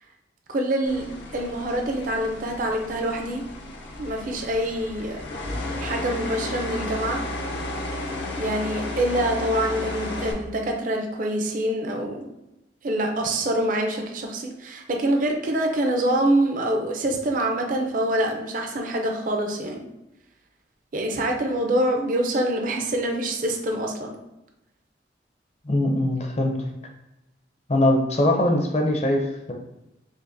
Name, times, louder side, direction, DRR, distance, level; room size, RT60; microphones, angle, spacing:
voice 1, 0.5-3.4 4.0-5.2 5.8-7.3 8.4-12.3 12.8-19.9 20.9-24.2, right 1 dB, 45° right, 2 dB, 0.5 m, -25 dB
sound 1, 0.9-10.3, left 2 dB, 75° left, 0.6 m, -33 dB
voice 2, 25.6-26.5 27.7-29.5, left 1 dB, 35° left, 2 dB, 0.5 m, -22 dB
5.1 x 2.1 x 2.6 m, 0.95 s
head